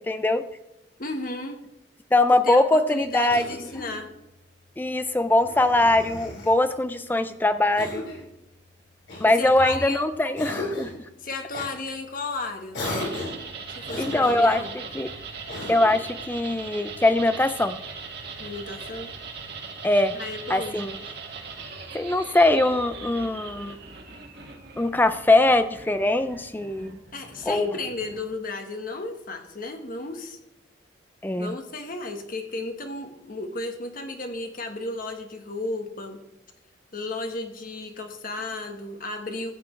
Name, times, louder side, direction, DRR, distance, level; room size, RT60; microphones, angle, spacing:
voice 1, 0.1-0.4 2.1-3.4 4.8-8.1 9.2-10.9 14.0-14.6 14.9-15.1 15.7-17.8 19.8-20.1 20.5-20.9 21.9-23.8 24.8-27.0 27.5-27.7 31.2-31.5, left 2 dB, 10° left, 11 dB, 0.4 m, -22 dB
voice 2, 1.0-1.6 2.3-4.1 9.3-10.0 11.2-12.8 13.7-14.7 18.4-19.1 20.1-20.8 27.1-30.4 31.4-36.2 36.9-39.5, left 2 dB, 50° left, 5 dB, 1.3 m, -34 dB
Cough, 3.3-4.0 5.4-6.6 7.8-8.3 9.1-9.9 10.4-11.0 11.5-11.7 12.7-13.4 13.9-14.6 15.5-16.0, left 2 dB, 75° left, 4.6 m, -35 dB
sound 1, 12.8-28.4, right 4 dB, 60° right, 1.8 m, -40 dB
14.0 x 8.5 x 3.2 m, 0.87 s
head